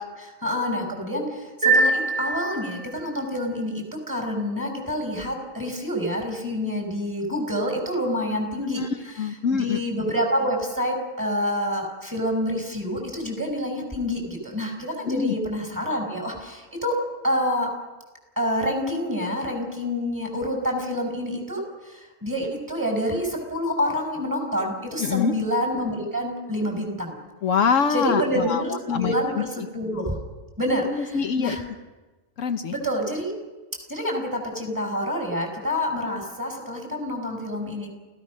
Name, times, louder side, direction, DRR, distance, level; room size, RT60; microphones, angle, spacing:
voice 1, 0.1-8.8 9.5-17.0 17.2-17.7 18.4-27.2 27.9-30.2 30.6-31.6 32.7-33.3 33.9-37.9, equal, 15° right, 1 dB, 5.6 m, -27 dB
sound 1, 1.6-3.1, right 3 dB, 70° right, 7.8 m, -23 dB
voice 2, 9.2-9.8 15.0-15.3 25.0-25.3 27.4-29.7 30.9-31.6 32.4-32.7, left 6 dB, 75° left, 7 dB, 1.3 m, -25 dB
29.0 x 16.0 x 6.4 m, 1.2 s
omnidirectional pair, 1.4 m